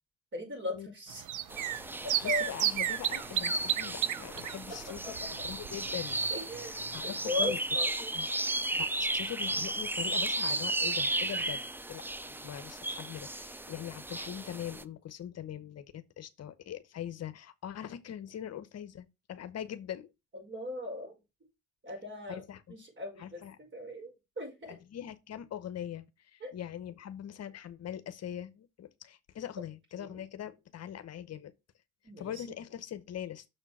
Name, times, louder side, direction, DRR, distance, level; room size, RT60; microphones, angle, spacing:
voice 1, 0.3-1.2 2.0-2.5 4.7-5.1 6.3-7.9 20.3-21.2 21.8-22.4 22.7-24.1 24.4-24.8 26.4-26.5 30.0-30.2 32.0-32.4, left 2 dB, 40° right, 5.3 m, -38 dB
sound 1, 1.1-6.3 6.5-6.6 6.9-7.0, right 11 dB, 80° right, 0.7 m, -33 dB
sound 2, 1.5-14.8, right 2 dB, 5° right, 0.4 m, -34 dB
voice 2, 2.2-5.1 5.4-6.2 6.9-7.6 8.1-11.6 11.9-20.1 22.3-22.8 23.2-23.6 24.7-31.5 32.2-33.4, left 10 dB, 55° left, 0.8 m, -42 dB
6.5 x 4.4 x 6.0 m
cardioid pair, 90°, 30 cm